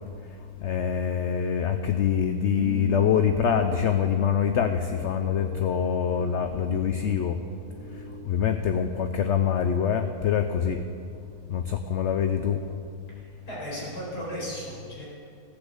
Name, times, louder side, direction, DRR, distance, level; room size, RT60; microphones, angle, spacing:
voice 1, 0.6-7.4 8.3-10.8 11.5-12.6, left 8 dB, 60° left, 7 dB, 0.8 m, -25 dB
sound 1, 2.6-8.3, right 4 dB, 55° right, 0.9 m, -40 dB
voice 2, 13.5-15.0, equal, 85° left, -6 dB, 5.2 m, -35 dB
15.0 x 8.2 x 8.0 m, 2.4 s
omnidirectional pair, 1.7 m